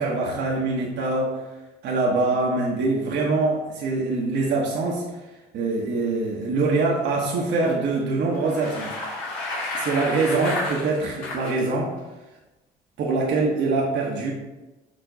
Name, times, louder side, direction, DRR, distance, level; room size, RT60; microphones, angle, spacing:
voice 1, 0.0-1.4 1.8-5.0 5.5-8.9 9.7-11.9 13.0-14.3, right 3 dB, 65° right, -2 dB, 1.2 m, -24 dB
Bicycle, 8.3-11.6, left 2 dB, 75° left, 2.3 m, -31 dB
6.8 x 4.3 x 3.9 m, 1.1 s
hypercardioid pair, 55°, 20 cm